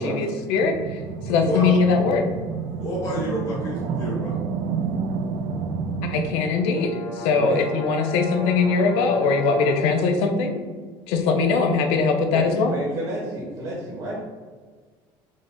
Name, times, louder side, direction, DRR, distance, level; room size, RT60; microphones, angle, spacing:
voice 1, 0.0-2.3 6.0-10.6 11.1-12.8, left 4 dB, 75° left, 5 dB, 0.5 m, -21 dB
sound 1, 0.6-6.3, right 5 dB, 60° right, 0.4 m, -29 dB
voice 2, 1.4-1.8 2.8-4.3, equal, 30° left, -6 dB, 1.2 m, -29 dB
sound 2, 6.2-10.1, equal, 90° left, 0.9 m, -36 dB
voice 3, 7.3-7.7 12.3-14.2, right 1 dB, 45° right, -4 dB, 1.1 m, -30 dB
5.1 x 2.1 x 3.7 m, 1.5 s
cardioid pair, 170°, 10 cm